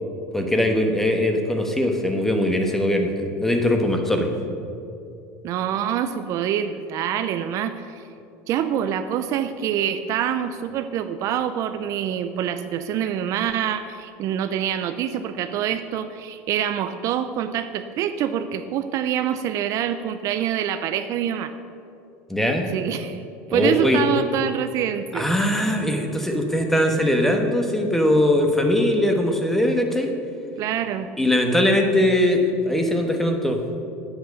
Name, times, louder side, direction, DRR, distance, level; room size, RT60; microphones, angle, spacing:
voice 1, 0.3-4.3 22.3-22.7 23.5-24.0 25.1-30.1 31.2-33.6, left 1 dB, 5° left, 3 dB, 1.3 m, -21 dB
voice 2, 5.4-8.0 8.5-21.5 22.7-23.2 23.5-25.3 30.6-31.1, right 9 dB, 50° right, 10 dB, 0.5 m, -26 dB
9.1 x 7.9 x 6.5 m, 2.6 s
supercardioid pair, 115°, 7 cm